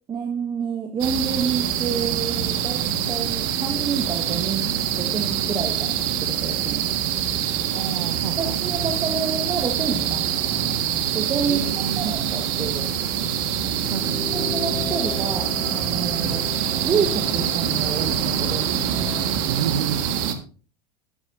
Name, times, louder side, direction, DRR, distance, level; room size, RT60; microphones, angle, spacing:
voice 1, 0.1-6.8 8.4-10.6 11.1-11.7 12.0-12.9 14.3-16.5 16.7-18.7, right 5 dB, 25° right, 4 dB, 1.3 m, -29 dB
sound 1, 1.0-20.3, right 9 dB, 55° right, 1.6 m, -25 dB
voice 2, 7.7-8.6 11.5-12.1 13.8-14.3 16.2-16.5 19.5-20.0, right 8 dB, 75° right, 10 dB, 0.8 m, -30 dB
sound 2, 13.7-19.4, left 5 dB, 10° left, 0.9 m, -37 dB
12.5 x 12.0 x 2.6 m, 0.39 s
figure-of-eight pair, 85°, 20 cm